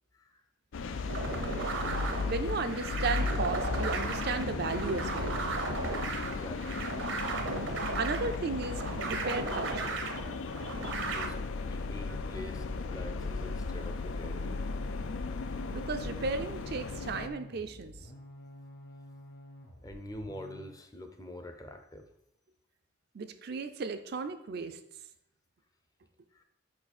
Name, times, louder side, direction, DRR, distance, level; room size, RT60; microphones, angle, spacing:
voice 1, 0.1-0.4 6.2-6.9 7.5-8.0 11.1-11.4 11.6-14.7 19.8-22.1 26.3-26.5, left 1 dB, 20° left, 6 dB, 0.5 m, -46 dB
sound 1, 0.7-17.3, left 4 dB, 85° left, 0.4 m, -36 dB
sound 2, 1.1-11.3, right 3 dB, 80° right, 0.8 m, -36 dB
voice 2, 2.2-5.3 7.9-10.0 15.7-17.9 23.1-24.8, right 4 dB, 55° right, 8 dB, 0.4 m, -35 dB
sound 3, 15.9-20.8, left 1 dB, 50° left, 1.2 m, -50 dB
5.4 x 4.7 x 4.2 m, 0.77 s
head